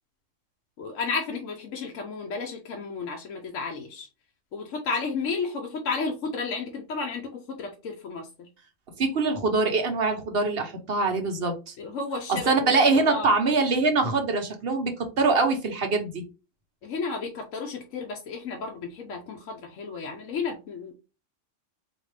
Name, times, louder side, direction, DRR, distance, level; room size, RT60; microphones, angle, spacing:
voice 1, 0.8-4.1 4.5-8.5 11.8-13.3 16.8-20.9, left 4 dB, 80° left, 2 dB, 1.1 m, -32 dB
voice 2, 9.0-11.7 12.3-16.2, right 3 dB, 55° right, 5 dB, 1.0 m, -24 dB
4.4 x 2.8 x 3.2 m, 0.31 s
omnidirectional pair, 1.3 m